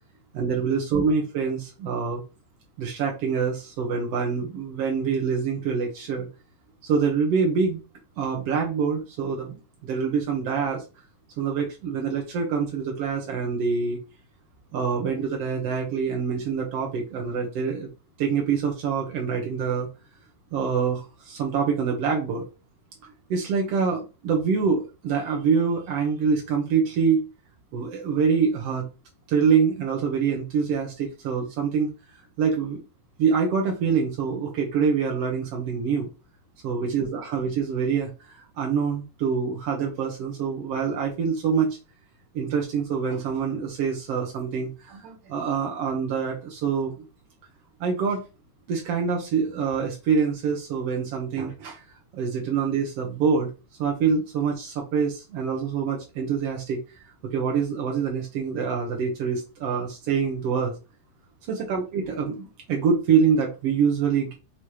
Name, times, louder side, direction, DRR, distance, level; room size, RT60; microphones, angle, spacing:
voice 1, 0.3-2.2 2.8-6.3 6.8-7.8 8.2-9.5 9.8-10.8 11.4-14.0 14.7-17.9 18.2-19.9 20.5-22.4 23.3-27.3 27.7-28.8 29.3-31.9 32.4-32.8 33.2-36.1 36.6-41.8 42.3-47.0 47.8-48.2 48.7-51.8 52.1-53.5 53.8-56.8 57.3-60.7 61.5-64.3, right 6 dB, 85° right, 1 dB, 1.3 m, -25 dB
6.8 x 2.9 x 4.7 m, 0.30 s
omnidirectional pair, 4.4 m